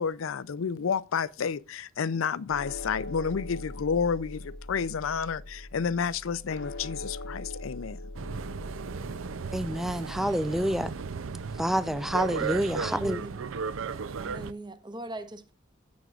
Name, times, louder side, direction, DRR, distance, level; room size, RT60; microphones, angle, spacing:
voice 1, 0.0-8.0, left 6 dB, 75° left, 0.5 m, -30 dB
sound 1, 2.5-12.9, left 1 dB, 60° left, 1.0 m, -42 dB
sound 2, 8.1-14.5, right 5 dB, 75° right, 0.5 m, -35 dB
voice 2, 9.5-10.9 11.5-13.2, equal, ahead, 0.4 m, -28 dB
voice 3, 12.8-13.5 14.2-15.5, right 1 dB, 25° right, 1.0 m, -40 dB
15.5 x 6.3 x 2.4 m
head